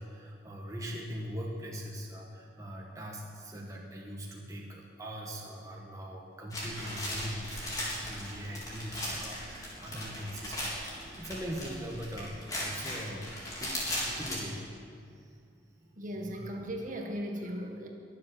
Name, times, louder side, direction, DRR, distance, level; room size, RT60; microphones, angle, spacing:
voice 1, 0.0-13.3 13.6-16.3, equal, 15° right, -2 dB, 1.5 m, -41 dB
sound 1, 6.5-14.4, left 1 dB, 20° left, 3.7 m, -38 dB
voice 2, 16.0-17.9, equal, 45° right, 2 dB, 1.7 m, -37 dB
22.5 x 7.7 x 7.0 m, 2.3 s
head